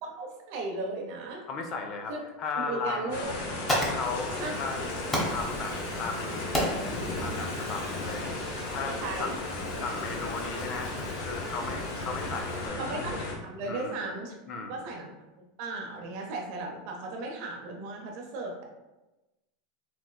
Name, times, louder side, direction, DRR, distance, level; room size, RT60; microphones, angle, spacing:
voice 1, 0.0-1.4 2.1-2.2 2.5-3.3 4.3-4.9 8.8-9.3 12.8-14.4 14.7-15.1 15.6-18.6, right 2 dB, 60° right, 1 dB, 0.7 m, -36 dB
voice 2, 1.5-3.3 3.8-4.8 5.3-6.5 7.2-8.4 8.7-12.9 13.6-14.0 14.5-14.9, left 4 dB, 40° left, 4 dB, 0.5 m, -36 dB
sound 1, 3.1-13.4, left 2 dB, 75° left, 0.7 m, -35 dB
Fire, 3.2-12.7, equal, 15° left, 0.9 m, -36 dB
4.2 x 2.1 x 2.2 m, 1.0 s
supercardioid pair, 125°, 0 cm